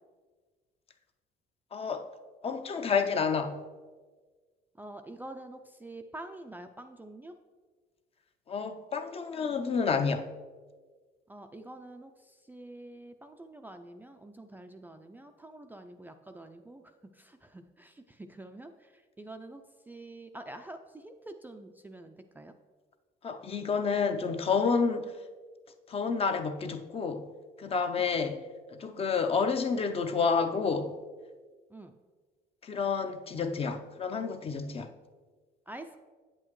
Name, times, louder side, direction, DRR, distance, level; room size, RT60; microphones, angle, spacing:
voice 1, 1.7-2.1 2.4-3.6 8.5-10.2 23.2-25.1 25.9-27.3 27.6-28.4 28.7-30.9 32.6-34.9, left 5 dB, 35° left, 7 dB, 0.6 m, -29 dB
voice 2, 4.8-7.4 11.3-22.5 27.9-28.1 31.7-31.9 35.7-36.0, right 1 dB, 10° right, 6 dB, 0.3 m, -47 dB
8.6 x 7.8 x 3.0 m, 1.4 s
cardioid pair, 110°, 17 cm